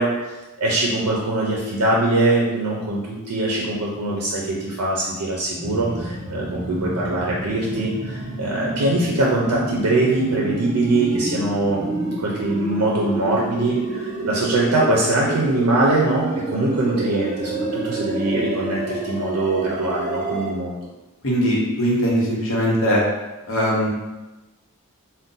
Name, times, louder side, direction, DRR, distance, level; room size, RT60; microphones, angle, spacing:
voice 1, 0.0-20.9, right 2 dB, 85° right, -3 dB, 0.5 m, -22 dB
sound 1, 5.6-20.5, right 2 dB, 30° right, 0.5 m, -29 dB
voice 2, 21.2-23.0 23.5-23.9, equal, 65° left, -4 dB, 0.8 m, -20 dB
2.6 x 2.2 x 3.7 m, 1.1 s
head